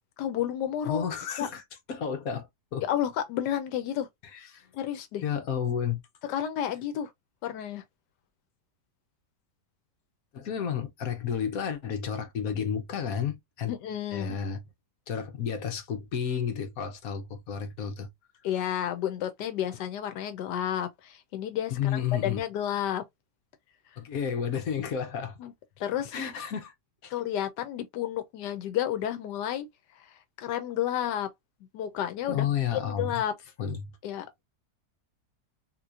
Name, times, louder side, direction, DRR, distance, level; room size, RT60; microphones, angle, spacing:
voice 1, 0.2-1.0 1.4-1.5 2.8-4.1 4.7-5.2 6.2-7.1 7.4-7.8 13.7-14.4 18.4-23.0 25.4-26.2 27.1-29.7 30.0-31.3 31.7-32.4 32.7-33.3 34.0-34.4, left 10 dB, 85° left, 1.2 m, -31 dB
voice 2, 0.9-1.6 1.9-2.8 4.5-4.7 5.2-6.0 10.3-13.7 14.1-14.6 15.1-18.1 21.7-22.4 24.0-25.4 26.1-26.7 27.0-27.1 32.3-33.1 33.6-33.8, left 8 dB, 60° left, 1.2 m, -31 dB
3.8 x 2.9 x 2.4 m
omnidirectional pair, 1.8 m